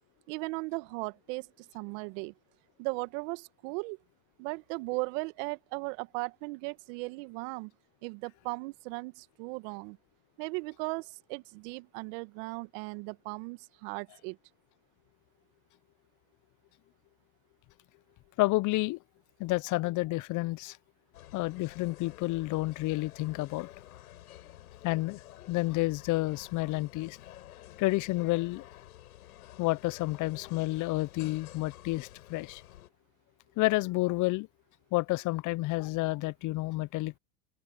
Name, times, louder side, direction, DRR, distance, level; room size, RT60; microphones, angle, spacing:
voice 1, 0.3-2.3 2.8-4.0 4.4-7.7 8.0-10.0 10.4-14.4, right 28 dB, 60° right, 1.8 m, -37 dB
voice 2, 18.4-19.0 19.4-20.8 21.3-23.7 24.8-25.2 25.5-27.2 27.8-28.6 29.6-32.6 33.6-34.5 34.9-37.2, left 20 dB, 45° left, 0.8 m, -30 dB
sound 1, 21.1-32.9, left 14 dB, 75° left, 7.3 m, -51 dB
open air
hypercardioid pair, 90°, 44 cm